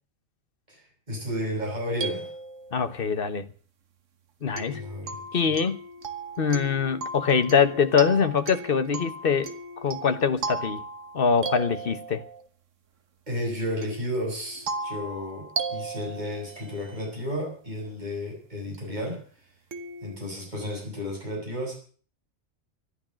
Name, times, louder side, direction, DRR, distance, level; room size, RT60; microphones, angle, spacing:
voice 1, 0.7-2.3 4.7-5.2 13.3-19.2 20.0-21.7, equal, 35° right, 7.2 m, -32 dB
sound 1, 1.6-3.1 4.6-12.5 13.8-17.2 18.7-18.8 19.7-20.2, right 3 dB, 75° right, 1.6 m, -36 dB
voice 2, 2.7-3.5 4.4-4.8 5.3-5.8 6.4-10.8 11.1-12.2, left 6 dB, 50° left, 1.2 m, -24 dB
13.5 x 11.5 x 7.5 m
omnidirectional pair, 1.3 m